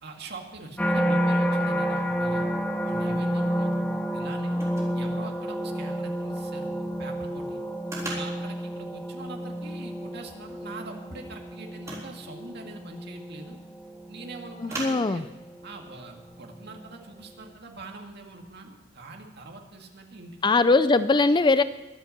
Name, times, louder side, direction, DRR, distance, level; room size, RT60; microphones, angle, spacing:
voice 1, 0.0-2.5 2.8-4.6 4.9-7.6 8.1-13.6 14.1-15.3 15.6-20.6, right 2 dB, 55° right, 2 dB, 2.1 m, -43 dB
sound 1, 0.8-16.0 16.5-16.9, equal, 5° left, 0.8 m, -30 dB
sound 2, 2.5-19.6, right 2 dB, 15° right, 3.8 m, -46 dB
voice 2, 14.6-15.2 20.4-21.6, left 3 dB, 25° left, 13 dB, 0.4 m, -20 dB
23.0 x 8.2 x 6.6 m, 1.1 s
head